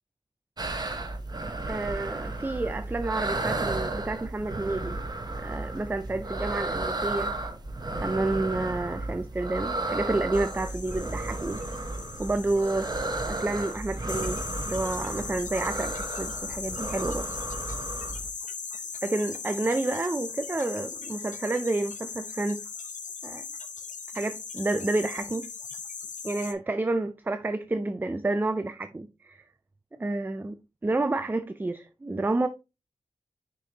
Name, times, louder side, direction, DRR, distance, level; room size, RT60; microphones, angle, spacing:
sound 1, 0.6-18.3, right 2 dB, 30° right, 0.8 m, -33 dB
voice 1, 1.7-5.0 5.4-7.3 7.9-11.6 12.2-14.4 14.7-17.3 19.0-22.6 23.2-23.4 24.1-25.5 26.2-29.4 30.0-30.6 30.8-32.5, right 2 dB, 15° right, 0.4 m, -29 dB
sound 2, 10.3-26.5, left 5 dB, 75° left, 0.9 m, -39 dB
6.3 x 5.2 x 2.9 m
wide cardioid pair, 110°, 13 cm